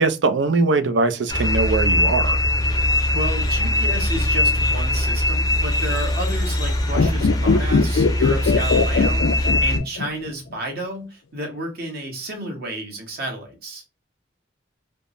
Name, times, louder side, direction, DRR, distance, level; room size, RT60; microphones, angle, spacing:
voice 1, 0.0-2.4, right 3 dB, 70° right, 0.5 m, -21 dB
sound 1, 1.3-9.8, left 1 dB, 20° left, 0.5 m, -21 dB
voice 2, 3.1-13.8, right 1 dB, 55° right, 1.2 m, -31 dB
sound 2, 6.9-10.3 10.5-10.6, left 4 dB, 90° left, 0.4 m, -20 dB
3.4 x 2.1 x 2.4 m
head